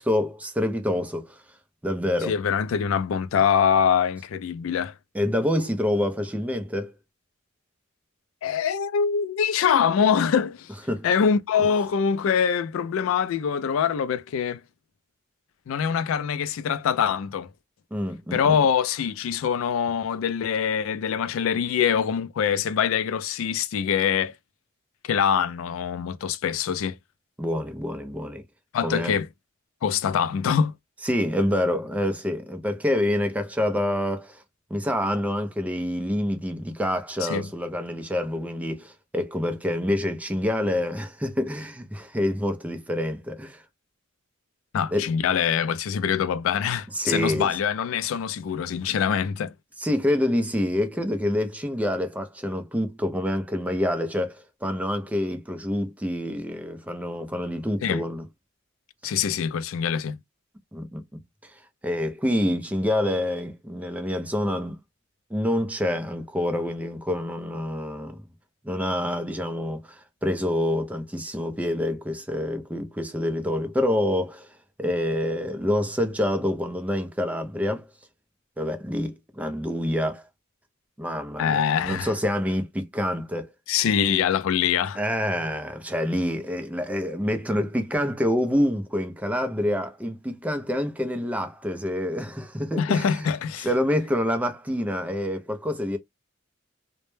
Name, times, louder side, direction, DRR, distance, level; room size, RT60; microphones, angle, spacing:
voice 1, 0.0-1.4 1.8-2.4 5.1-6.9 10.9-11.1 17.9-18.6 27.4-28.4 28.8-29.1 31.0-34.4 34.7-43.6 44.9-45.1 46.9-47.5 49.8-58.2 59.0-59.1 60.7-61.0 61.4-61.5 61.8-64.8 65.3-68.2 68.6-74.5 74.8-77.9 78.6-80.2 81.0-83.5 85.0-93.3 93.6-96.0, left 1 dB, 5° right, 0.4 m, -27 dB
voice 2, 2.2-4.9 8.4-10.7 11.0-14.6 15.7-17.5 18.3-24.3 25.0-27.0 28.7-29.3 29.8-30.7 37.2-37.5 44.7-49.5 57.8-58.0 59.0-60.2 81.4-82.1 83.7-85.0 92.8-93.7, left 7 dB, 75° left, 0.3 m, -24 dB
2.1 x 2.0 x 3.0 m
head